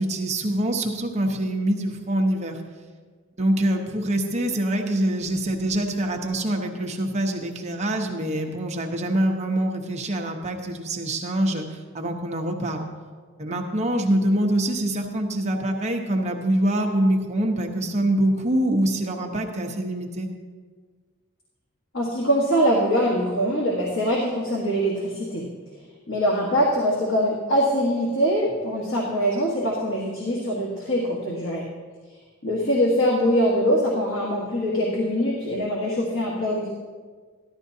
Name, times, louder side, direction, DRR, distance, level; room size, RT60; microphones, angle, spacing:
voice 1, 0.0-2.6 3.4-12.9 13.4-20.3, right 1 dB, 30° right, 2 dB, 0.9 m, -25 dB
voice 2, 21.9-25.5 26.1-31.6 32.4-36.7, equal, 60° left, -3 dB, 1.4 m, -23 dB
14.5 x 11.5 x 2.7 m, 1.5 s
head